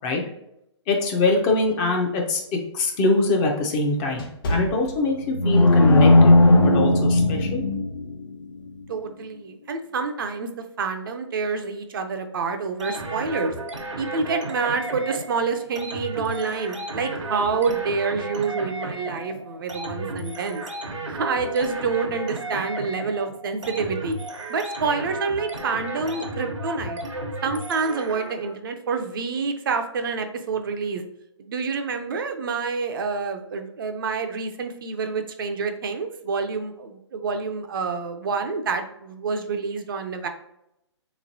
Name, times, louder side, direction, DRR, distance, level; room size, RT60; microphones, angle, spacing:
voice 1, 0.9-2.4 2.7-6.3 6.6-7.6, left 3 dB, 20° left, 1 dB, 0.4 m, -23 dB
sound 1, 2.0-5.6 6.1-6.3 6.9-7.2, equal, 45° left, 0.8 m, -34 dB
sound 2, 5.0-8.3, left 2 dB, 80° left, 0.7 m, -16 dB
voice 2, 8.9-10.5 10.8-13.5 14.0-20.6 21.1-24.2 24.5-27.0 27.4-31.0 31.4-40.3, right 4 dB, 45° right, 6 dB, 0.4 m, -27 dB
sound 3, 12.8-28.5, right 2 dB, 85° right, 0.9 m, -34 dB
3.7 x 3.0 x 2.6 m, 0.81 s
hypercardioid pair, 145°, 15 cm